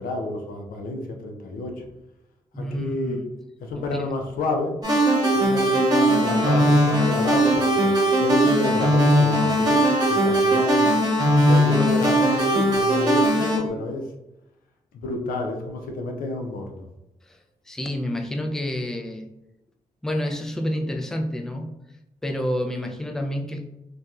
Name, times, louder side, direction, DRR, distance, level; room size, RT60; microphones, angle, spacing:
voice 1, 0.0-1.9 2.6-3.2 3.6-4.8 5.4-7.9 8.2-10.8 11.5-14.1 14.9-16.8, left 2 dB, 80° left, 2 dB, 0.5 m, -29 dB
voice 2, 2.5-3.2 3.8-4.1 17.3-17.4 17.7-19.3 20.0-21.7 22.2-23.7, left 1 dB, 5° left, 3 dB, 0.4 m, -29 dB
sound 1, 4.8-13.6, right 1 dB, 30° right, 1.1 m, -19 dB
2.8 x 2.2 x 2.3 m, 0.93 s
supercardioid pair, 45°, 15 cm